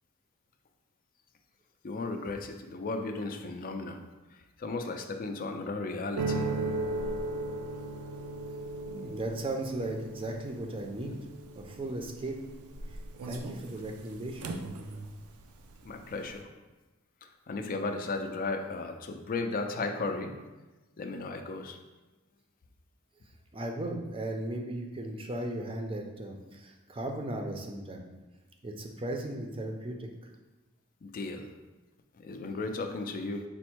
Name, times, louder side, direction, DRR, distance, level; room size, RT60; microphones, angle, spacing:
voice 1, 1.8-4.0 4.3-6.5 15.8-16.5 17.2-20.3 21.0-21.8 31.0-31.5 32.2-33.4, left 3 dB, 40° left, 5 dB, 0.4 m, -35 dB
sound 1, 6.2-15.4 15.7-16.3, right 2 dB, 85° right, 0.4 m, -37 dB
voice 2, 8.9-11.2 11.6-12.4 13.3-14.5 23.5-28.1 28.6-30.1, right 1 dB, 25° right, 2 dB, 0.5 m, -36 dB
5.2 x 2.1 x 4.4 m, 1.1 s
head